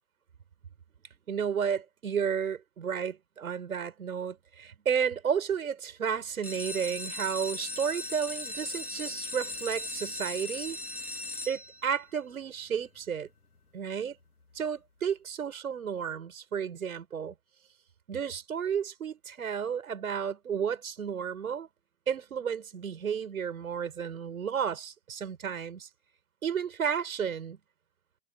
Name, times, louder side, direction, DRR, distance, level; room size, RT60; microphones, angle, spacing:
voice 1, 1.3-10.8 11.5-13.3 13.7-14.2 14.5-17.3 18.1-21.7 22.1-25.9 26.4-27.6, right 7 dB, 70° right, 7.5 m, -32 dB
sound 1, 6.3-12.0 12.7-13.2 13.6-13.7 13.9-14.0 14.4-14.5, left 2 dB, 85° left, 3.1 m, -38 dB
figure-of-eight pair, 95°, 44 cm